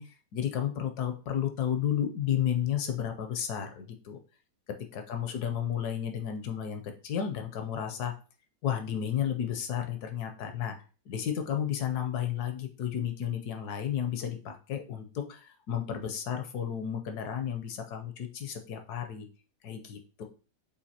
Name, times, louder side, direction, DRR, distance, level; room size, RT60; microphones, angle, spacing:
voice 1, 0.0-4.2 4.9-8.1 8.6-10.8 11.1-19.3 19.6-20.2, left 9 dB, 70° left, 6 dB, 1.0 m, -32 dB
6.9 x 2.7 x 2.8 m, 0.35 s
omnidirectional pair, 2.1 m